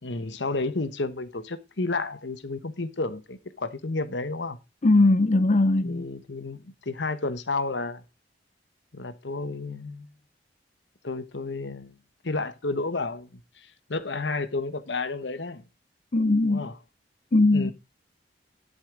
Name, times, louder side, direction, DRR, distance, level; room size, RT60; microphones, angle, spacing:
voice 1, 0.0-4.6 5.8-8.0 8.9-10.1 11.0-11.9 12.2-15.6 16.4-16.7 17.5-17.7, left 3 dB, 90° left, 1.2 m, -31 dB
voice 2, 4.8-6.1 16.1-16.7 17.3-17.7, left 2 dB, 40° left, 0.6 m, -20 dB
11.0 x 8.3 x 3.8 m
head